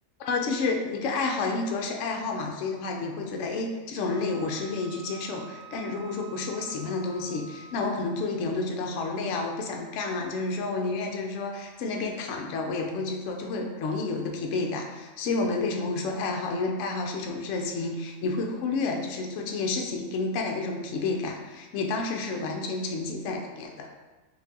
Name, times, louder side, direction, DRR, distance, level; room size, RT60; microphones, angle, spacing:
voice 1, 0.2-23.9, left 3 dB, 70° left, 1 dB, 0.9 m, -30 dB
Wind instrument woodwind instrument, 4.0-8.3, right 6 dB, 70° right, 0.9 m, -48 dB
5.5 x 2.6 x 2.7 m, 1.2 s
omnidirectional pair, 1.5 m